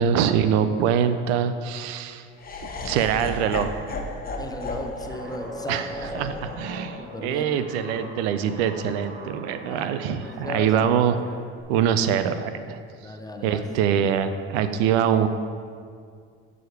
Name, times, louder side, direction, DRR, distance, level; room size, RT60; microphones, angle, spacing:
voice 1, 0.0-2.3 2.8-3.7 5.7-11.2 11.7-12.8 13.4-15.3, right 8 dB, 80° right, 11 dB, 0.5 m, -24 dB
Laughter, 2.4-8.5, left 2 dB, 30° left, 1.0 m, -35 dB
voice 2, 4.4-5.8 6.1-6.2 7.0-7.5 9.6-9.9 10.2-10.9 13.0-13.7, left 2 dB, 10° left, 4 dB, 0.7 m, -36 dB
Guitar, 5.1-11.6, right 1 dB, 35° right, 1.3 m, -41 dB
7.9 x 5.0 x 4.6 m, 2.2 s
hypercardioid pair, 75°, 31 cm